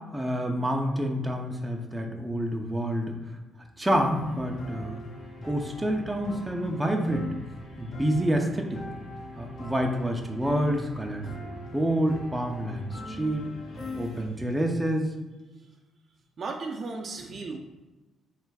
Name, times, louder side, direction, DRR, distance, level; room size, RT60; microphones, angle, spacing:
voice 1, 0.1-3.2 3.8-5.0 5.4-7.3 7.8-8.8 9.4-13.4 14.0-15.1, equal, 10° right, 1 dB, 0.6 m, -28 dB
sound 1, 3.9-14.3, left 2 dB, 60° left, 1.4 m, -41 dB
voice 2, 13.8-14.5 15.6-15.7 16.4-17.6, right 3 dB, 45° right, 1 dB, 0.6 m, -38 dB
3.3 x 3.2 x 4.7 m, 1.1 s
cardioid pair, 90°, 0 cm